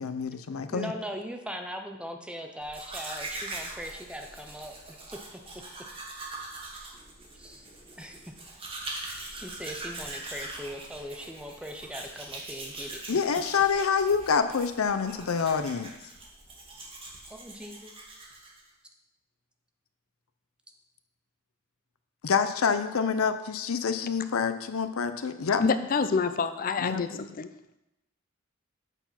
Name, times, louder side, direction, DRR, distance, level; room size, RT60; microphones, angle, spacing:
voice 1, 0.0-0.9 13.1-15.9 22.2-25.6 26.8-27.3, left 6 dB, 85° left, 0.6 m, -27 dB
voice 2, 0.7-5.0 7.3-7.6 8.0-8.3 9.3-13.0 17.3-17.9, equal, 5° right, 0.6 m, -40 dB
Domestic sounds home sounds, 2.6-18.7, right 2 dB, 25° right, 1.3 m, -42 dB
voice 3, 25.6-27.5, left 5 dB, 40° left, 0.5 m, -27 dB
8.0 x 4.6 x 5.7 m
head